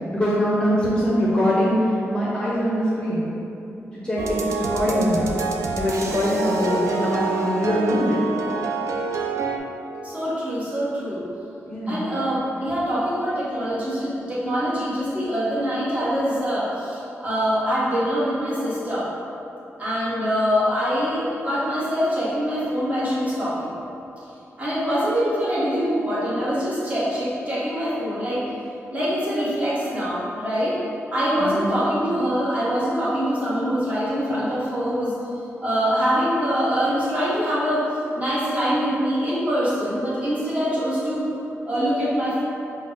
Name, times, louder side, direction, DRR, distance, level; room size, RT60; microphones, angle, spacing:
voice 1, 0.1-1.7 2.1-3.3 4.0-5.3 5.8-8.2 11.7-12.0 31.4-31.7, equal, 15° left, -8 dB, 0.7 m, -22 dB
sound 1, 4.2-9.6, right 4 dB, 85° right, 0.4 m, -27 dB
voice 2, 10.0-11.2 11.9-19.1 19.8-23.7 24.6-28.4 28.9-30.8 31.1-35.1 35.6-37.8 38.2-41.2 41.6-42.4, equal, 25° right, -10 dB, 1.1 m, -24 dB
5.4 x 2.1 x 3.9 m, 2.9 s
wide cardioid pair, 155°, 5 cm